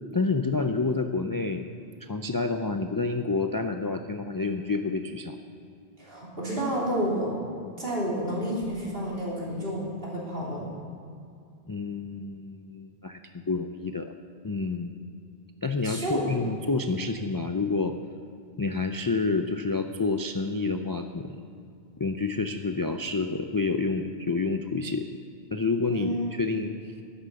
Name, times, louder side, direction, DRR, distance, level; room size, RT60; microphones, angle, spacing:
voice 1, 0.1-1.6 2.0-5.4 11.7-13.2 13.5-14.1 14.4-14.9 15.6-18.0 18.6-21.3 22.0-25.1 25.5-26.7, left 3 dB, 30° left, 6 dB, 0.4 m, -28 dB
voice 2, 6.0-7.3 7.8-10.7 15.8-16.4 25.9-26.3, equal, 60° right, -5 dB, 3.4 m, -30 dB
11.5 x 10.0 x 6.9 m, 2.5 s
omnidirectional pair, 1.1 m